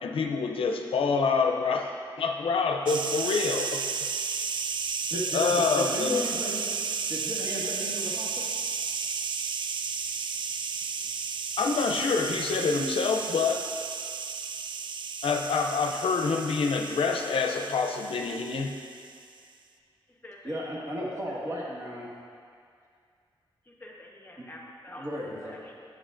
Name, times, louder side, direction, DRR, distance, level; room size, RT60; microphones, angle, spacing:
voice 1, 0.0-3.8 5.3-6.2 11.6-13.6 15.2-18.8, left 4 dB, 80° left, 4 dB, 0.5 m, -27 dB
sound 1, 2.9-19.2, right 5 dB, 60° right, 0.4 m, -33 dB
voice 2, 5.1-6.7 7.1-8.4 20.4-22.1 24.4-24.5 25.0-25.6, equal, 35° right, -5 dB, 1.8 m, -35 dB
voice 3, 20.1-20.6 23.6-25.1 25.4-25.8, left 1 dB, 20° left, -1 dB, 1.0 m, -47 dB
10.5 x 7.6 x 2.5 m, 2.3 s
wide cardioid pair, 90°, 9 cm